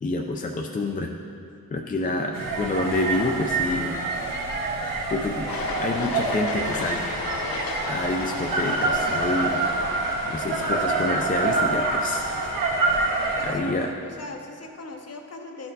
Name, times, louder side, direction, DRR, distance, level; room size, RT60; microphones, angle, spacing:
voice 1, 0.0-1.1 1.7-4.0 5.1-5.5 5.8-7.1 7.9-9.6 10.3-12.3 13.4-13.9, left 2 dB, 25° left, 2 dB, 0.3 m, -28 dB
sound 1, 2.3-13.5, right 3 dB, 70° right, 0.9 m, -27 dB
Cheering, 2.7-12.8, right 2 dB, 30° right, 0.7 m, -36 dB
sound 2, 5.5-10.9, left 6 dB, 85° left, 0.5 m, -35 dB
voice 2, 13.4-15.7, left 3 dB, 45° left, 3 dB, 0.7 m, -39 dB
12.0 x 4.3 x 4.0 m, 2.5 s
wide cardioid pair, 170°, 35 cm